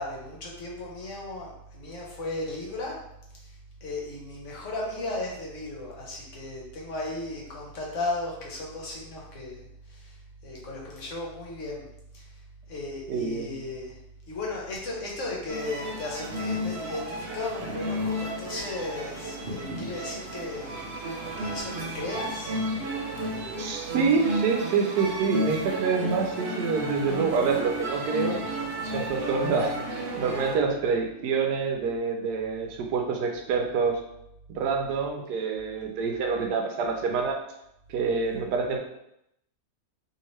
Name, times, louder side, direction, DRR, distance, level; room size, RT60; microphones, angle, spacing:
voice 1, 0.0-3.0 3.4-3.5 3.8-10.2 10.4-12.3 12.7-13.9 14.3-20.8 21.4-22.6 23.2-23.5, left 2 dB, 55° left, -3 dB, 1.1 m, -35 dB
voice 2, 13.1-13.6 23.6-28.4 28.8-29.8 30.2-34.0 34.5-37.4 37.9-38.8, right 5 dB, 85° right, 3 dB, 1.2 m, -27 dB
sound 1, 15.5-30.6, right 1 dB, 60° right, 0.6 m, -32 dB
2.9 x 2.8 x 3.1 m, 0.80 s
omnidirectional pair, 1.7 m